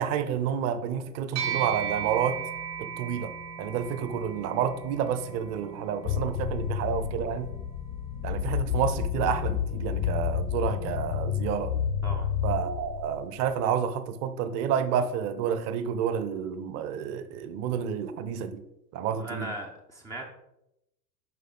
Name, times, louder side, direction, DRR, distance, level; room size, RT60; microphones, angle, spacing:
voice 1, 0.0-2.4 2.8-3.3 3.6-7.5 8.2-11.7 12.4-18.6 18.9-19.5, right 8 dB, 30° right, 11 dB, 0.7 m, -29 dB
sound 1, 1.4-11.0, right 8 dB, 65° right, 2.6 m, -38 dB
sound 2, 6.1-13.6, left 8 dB, 40° left, 0.7 m, -30 dB
voice 2, 19.1-20.3, right 1 dB, 10° right, -1 dB, 0.4 m, -38 dB
7.7 x 5.3 x 3.8 m, 0.86 s
figure-of-eight pair, 90°, 49 cm